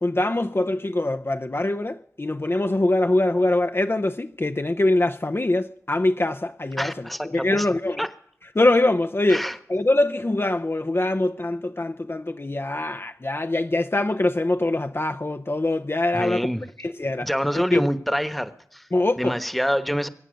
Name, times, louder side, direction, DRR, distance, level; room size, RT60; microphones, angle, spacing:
voice 1, 0.0-8.1 8.6-16.5 16.8-17.3 17.5-17.9 18.9-19.3, left 2 dB, 40° left, 0.6 m, -23 dB
voice 2, 6.8-7.7 8.0-8.1 9.3-9.6 16.1-16.7 17.2-18.9 19.2-20.1, equal, ahead, 1.2 m, -26 dB
22.5 x 9.1 x 6.4 m
wide cardioid pair, 40°, 6 cm